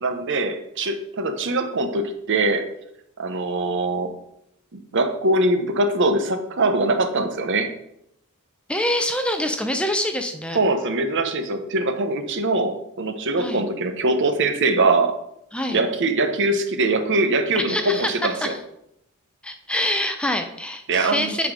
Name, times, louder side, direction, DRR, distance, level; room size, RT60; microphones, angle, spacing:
voice 1, 0.0-2.6 3.2-4.1 4.7-7.7 10.5-15.1 15.7-18.5 20.9-21.3, right 2 dB, 55° right, 7 dB, 0.8 m, -22 dB
voice 2, 8.7-10.6 13.4-13.6 15.5-15.8 17.5-18.1 18.4-18.6 19.4-21.5, left 1 dB, 5° left, 5 dB, 0.5 m, -25 dB
9.2 x 4.2 x 4.8 m, 0.78 s
head